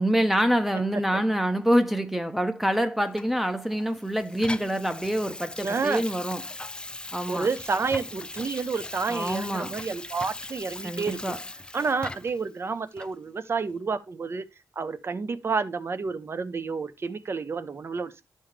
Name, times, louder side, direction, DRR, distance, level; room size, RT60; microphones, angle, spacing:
voice 1, 0.0-6.4 7.1-7.5 9.1-9.8 10.8-11.4, equal, 5° right, 0.8 m, -26 dB
Water tap faucet / Sink (filling or washing), 3.2-12.5 13.0-13.1, left 2 dB, 15° left, 0.4 m, -39 dB
voice 2, 5.6-6.0 7.3-11.2 11.7-14.4 14.8-18.1, right 4 dB, 40° right, 0.8 m, -30 dB
11.5 x 5.5 x 3.3 m
cardioid pair, 80°, 6 cm